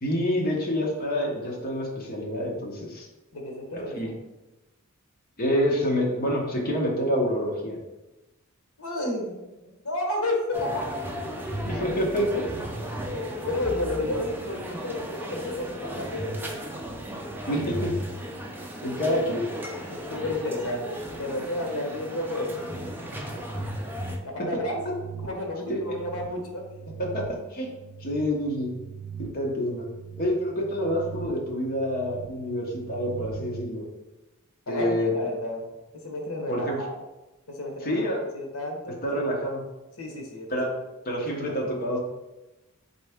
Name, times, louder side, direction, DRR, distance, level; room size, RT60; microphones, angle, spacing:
voice 1, 0.0-3.1 3.7-4.1 5.4-7.8 11.7-12.4 17.5-17.9 18.8-19.4 27.0-27.7 28.0-28.7 29.2-29.9 30.2-33.8 34.7-35.1 36.5-36.8 37.8-38.2 39.0-39.6 40.5-40.7 41.0-42.0, equal, 45° left, -2 dB, 1.0 m, -27 dB
voice 2, 3.3-4.1 8.8-9.3 9.6-11.2 13.4-16.6 19.0-19.1 19.9-22.6 23.3-23.4 24.2-24.8 25.2-26.7 34.7-35.7 35.9-37.0 37.5-38.1 38.3-39.3 40.0-40.6 41.6-41.7, left 1 dB, 75° left, 2 dB, 1.0 m, -32 dB
sound 1, 10.5-24.2, equal, 10° right, 0.4 m, -35 dB
sound 2, 24.6-33.7, right 7 dB, 70° right, 0.5 m, -42 dB
4.2 x 3.3 x 3.5 m, 1.0 s
head